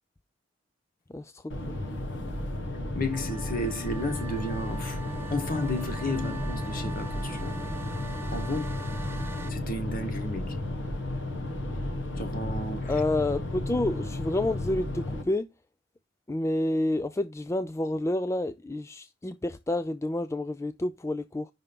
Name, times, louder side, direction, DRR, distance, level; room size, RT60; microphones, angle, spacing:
sound 1, 1.5-15.2, left 1 dB, 70° left, 1.2 m, -34 dB
sound 2, 2.4-14.9, right 1 dB, 30° right, 1.0 m, -43 dB
voice 1, 2.9-5.0 5.3-7.6 8.3-8.8 9.5-10.6 12.2-12.9, left 1 dB, 50° left, 1.2 m, -32 dB
sound 3, 3.1-9.5, right 2 dB, 15° right, 0.7 m, -43 dB
voice 2, 12.9-15.5 16.3-21.5, left 1 dB, 15° left, 0.3 m, -29 dB
5.7 x 3.5 x 5.2 m
head